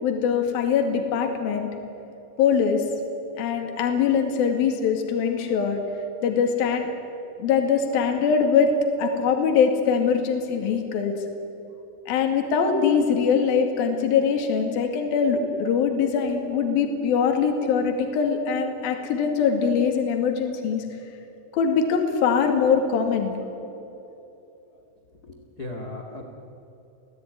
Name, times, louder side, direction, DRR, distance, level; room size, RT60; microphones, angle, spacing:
voice 1, 0.0-1.7 2.4-2.8 3.4-5.8 6.2-6.9 7.4-8.7 9.0-11.2 12.1-20.8 21.5-23.4, left 6 dB, 55° left, 3 dB, 3.6 m, -22 dB
voice 2, 25.2-26.2, left 2 dB, 80° left, 2 dB, 0.8 m, -37 dB
28.5 x 17.5 x 9.6 m, 2.9 s
omnidirectional pair, 5.8 m